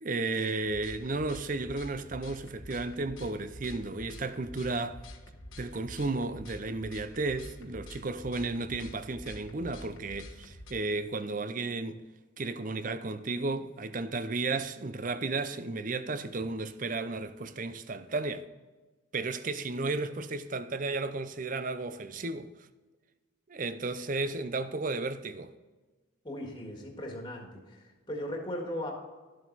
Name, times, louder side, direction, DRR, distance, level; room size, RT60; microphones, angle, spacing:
voice 1, 0.0-5.0 5.6-12.0 12.4-18.4 19.1-22.5 23.5-25.5, right 3 dB, 40° right, 0.5 m, -33 dB
sound 1, 0.6-10.7, left 1 dB, 70° left, 1.2 m, -47 dB
voice 2, 26.2-28.9, left 1 dB, 20° left, 1.8 m, -38 dB
12.0 x 7.8 x 4.0 m
head